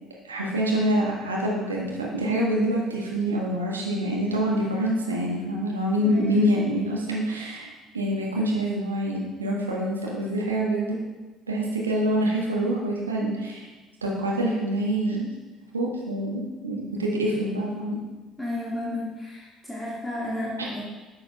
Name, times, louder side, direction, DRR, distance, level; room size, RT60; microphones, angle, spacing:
voice 1, 0.3-7.7 7.9-11.0 11.5-13.7 14.0-15.3 15.7-18.0 20.6-20.7, right 1 dB, 85° right, -3 dB, 1.3 m, -26 dB
voice 2, 6.0-6.5 18.4-20.8, left 1 dB, 10° left, -7 dB, 2.1 m, -32 dB
11.0 x 6.2 x 2.5 m, 1.2 s
figure-of-eight pair, 55°, 0 cm